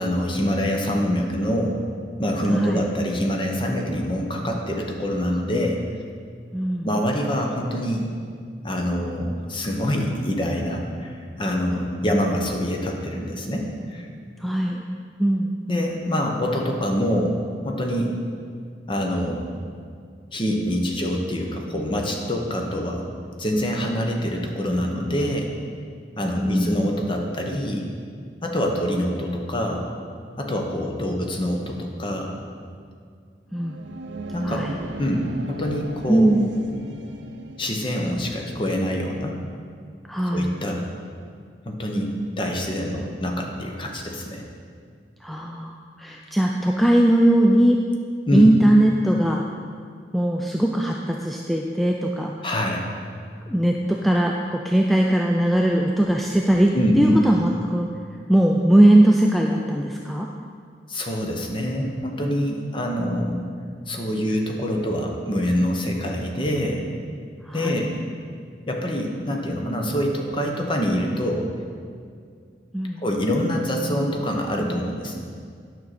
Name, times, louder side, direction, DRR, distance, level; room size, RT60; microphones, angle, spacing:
voice 1, 0.0-1.8 2.2-5.8 6.8-8.1 8.6-14.1 15.7-17.4 17.6-18.2 18.9-19.4 20.3-23.0 23.4-25.5 26.2-27.9 28.4-29.9 30.4-32.3 34.3-34.7 35.0-35.2 35.5-36.3 37.6-39.4 40.3-40.8 41.6-42.1 42.4-44.4 48.3-48.5 52.4-52.8 56.7-57.2 60.9-63.4 63.9-66.8 67.5-67.9 68.7-71.5 73.0-75.1, equal, 30° left, 1 dB, 0.9 m, -25 dB
voice 2, 2.5-2.8 6.5-6.9 14.4-14.8 15.2-15.5 26.4-26.9 33.5-33.8 34.4-34.8 36.1-36.5 40.1-40.5 45.2-47.8 48.3-49.4 50.1-52.3 53.5-57.9 58.3-60.3 67.5-67.9 72.7-73.0, right 1 dB, ahead, 0 dB, 0.3 m, -19 dB
sound 1, 33.5-38.2, right 2 dB, 85° right, 0.5 m, -36 dB
9.5 x 6.1 x 4.2 m, 2.1 s
head